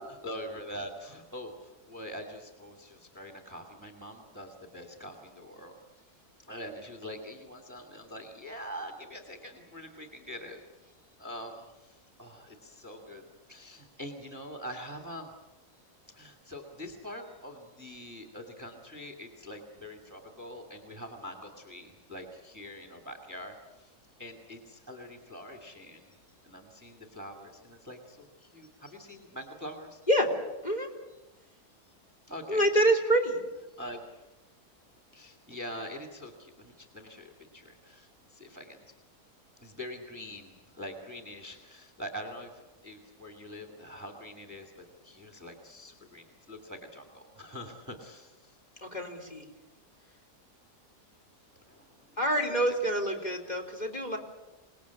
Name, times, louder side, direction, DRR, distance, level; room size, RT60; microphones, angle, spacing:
voice 1, 0.0-1.5 1.9-5.8 6.5-10.6 11.2-11.6 12.2-13.2 13.5-15.3 16.1-23.6 24.2-26.1 26.4-30.0 32.3-32.7 33.8-34.0 35.1-38.8 39.6-42.5 42.8-44.7 45.0-48.3 51.7-51.8, equal, 10° right, 4 dB, 2.5 m, -44 dB
voice 2, 32.5-33.5 48.8-49.4 52.2-54.2, right 1 dB, 25° left, 2 dB, 3.7 m, -27 dB
27.5 x 20.0 x 8.4 m, 1.1 s
omnidirectional pair, 1.7 m